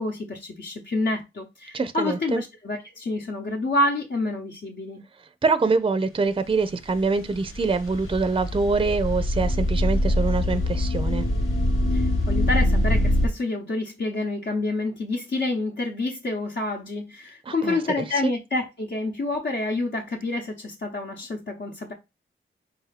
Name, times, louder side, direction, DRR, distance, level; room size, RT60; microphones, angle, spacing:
voice 1, 0.0-5.0 11.9-21.9, left 2 dB, 60° left, 0.9 m, -28 dB
voice 2, 1.7-2.4 5.4-11.2 17.5-18.3, right 4 dB, 25° right, 0.5 m, -25 dB
sound 1, 6.5-13.3, left 1 dB, 90° left, 1.1 m, -24 dB
4.2 x 2.7 x 4.0 m
cardioid pair, 55°, 21 cm